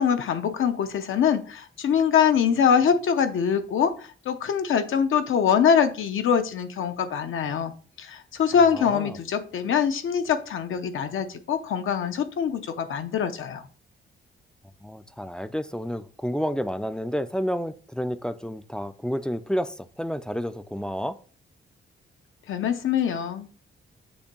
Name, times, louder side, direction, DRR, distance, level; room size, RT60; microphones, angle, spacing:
voice 1, 0.0-3.9 4.3-7.7 8.0-13.6 22.5-23.5, left 7 dB, 80° left, 0.8 m, -23 dB
voice 2, 8.5-9.2 14.8-21.2, equal, 5° left, 0.3 m, -30 dB
7.0 x 2.7 x 5.1 m
wide cardioid pair, 135°, 20 cm